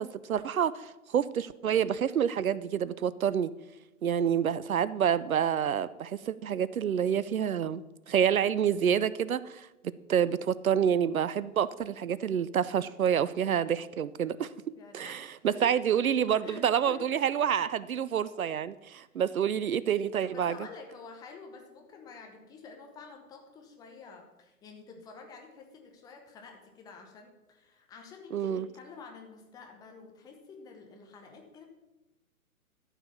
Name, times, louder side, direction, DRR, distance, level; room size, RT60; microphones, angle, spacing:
voice 1, 0.0-3.5 4.0-7.8 8.1-14.5 14.9-20.6 28.3-28.7, right 8 dB, 70° right, 18 dB, 0.6 m, -28 dB
voice 2, 14.8-16.0 16.4-17.1 20.3-31.7, left 4 dB, 10° left, 2 dB, 0.9 m, -49 dB
13.5 x 4.9 x 7.0 m, 1.0 s
figure-of-eight pair, 135°, 44 cm